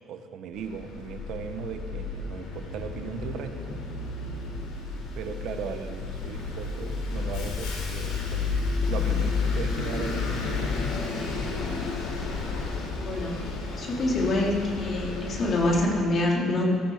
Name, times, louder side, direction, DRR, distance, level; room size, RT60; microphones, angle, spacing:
voice 1, 0.1-3.9 5.1-8.6 8.9-10.4 10.6-10.7 12.7-12.8, right 7 dB, 70° right, 7 dB, 1.4 m, -37 dB
Bus, 0.5-15.8, left 4 dB, 85° left, 3.6 m, -31 dB
voice 2, 8.8-9.1 13.0-13.4 13.8-16.6, left 2 dB, 45° left, -2 dB, 3.9 m, -26 dB
18.5 x 13.5 x 5.2 m, 2.4 s
cardioid pair, 100°, 0 cm